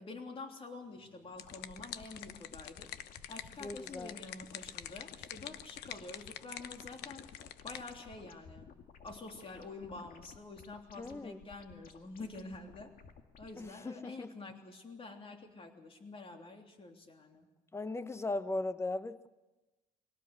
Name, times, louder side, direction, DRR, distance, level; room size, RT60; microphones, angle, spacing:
voice 1, 0.0-2.9 3.3-7.3 7.6-8.7 9.0-12.9 13.4-17.5, left 3 dB, 35° left, 3.2 m, -48 dB
sound 1, 1.1-7.9, left 11 dB, 85° left, 1.0 m, -47 dB
sound 2, 1.3-13.7, left 6 dB, 55° left, 2.0 m, -56 dB
voice 2, 3.6-4.2 11.0-11.4 13.6-14.3 17.7-19.3, left 2 dB, 15° left, 1.0 m, -38 dB
22.5 x 17.5 x 8.2 m
cardioid pair, 110°, 17 cm